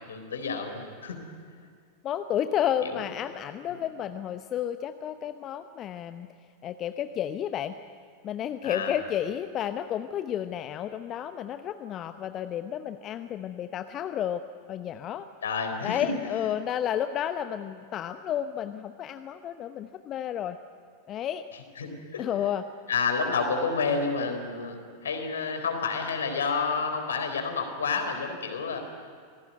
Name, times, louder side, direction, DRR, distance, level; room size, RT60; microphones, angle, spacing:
voice 1, 0.1-1.2 2.9-3.0 3.7-3.8 8.6-8.9 15.4-16.1 21.8-22.2 22.9-28.8, left 4 dB, 65° left, 6 dB, 3.8 m, -29 dB
voice 2, 2.0-6.3 6.6-7.8 8.2-14.4 14.7-15.3 15.8-20.6 21.1-21.4 22.2-22.7, left 10 dB, 30° left, 10 dB, 0.8 m, -31 dB
26.0 x 18.0 x 9.5 m, 2.2 s
figure-of-eight pair, 90°, 0 cm